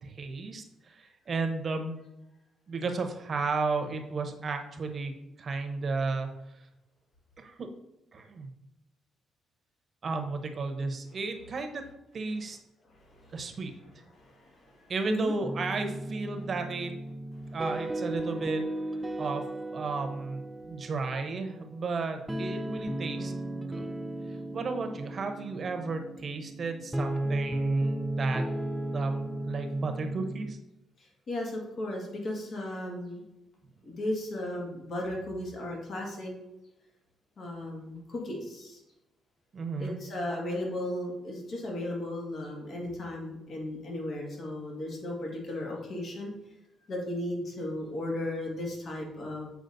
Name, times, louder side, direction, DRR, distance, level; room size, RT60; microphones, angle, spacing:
voice 1, 0.0-1.9 2.7-5.1 5.4-6.3 7.4-7.7 8.1-8.5 10.0-11.8 12.1-12.6 13.3-13.7 14.9-16.9 17.5-18.6 19.2-19.4 19.7-23.9 24.5-28.4 28.9-30.6 39.5-40.0, right 3 dB, 45° right, 5 dB, 0.8 m, -33 dB
voice 2, 12.9-13.4 14.1-15.3 31.0-33.2 33.8-36.3 37.4-38.8 39.8-46.3 46.9-49.5, left 1 dB, 55° left, -1 dB, 1.7 m, -36 dB
sound 1, 15.4-30.5, right 1 dB, 10° right, 0.5 m, -35 dB
7.7 x 4.9 x 2.6 m, 0.93 s
cardioid pair, 90°, 0 cm